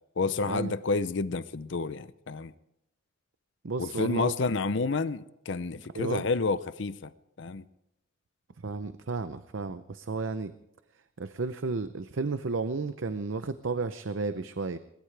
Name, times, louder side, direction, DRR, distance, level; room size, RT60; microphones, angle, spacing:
voice 1, 0.2-2.5 3.8-7.1 7.4-7.6, left 3 dB, 60° left, 0.6 m, -30 dB
voice 2, 3.6-4.3 5.9-6.2 8.6-10.5 11.2-14.8, right 4 dB, 70° right, 0.6 m, -32 dB
21.5 x 20.0 x 3.4 m
head